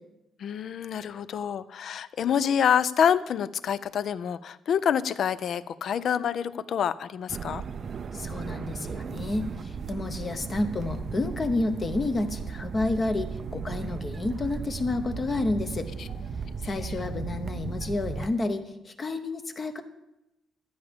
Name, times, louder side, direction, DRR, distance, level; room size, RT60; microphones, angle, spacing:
voice 1, 0.4-7.6, left 8 dB, 50° left, 16 dB, 0.4 m, -27 dB
sound 1, 7.3-18.3, right 6 dB, 35° right, 0.4 m, -36 dB
voice 2, 8.1-15.9 16.6-19.8, left 2 dB, 25° left, 9 dB, 0.8 m, -30 dB
12.5 x 9.3 x 5.1 m, 0.92 s
cardioid pair, 175°, 0 cm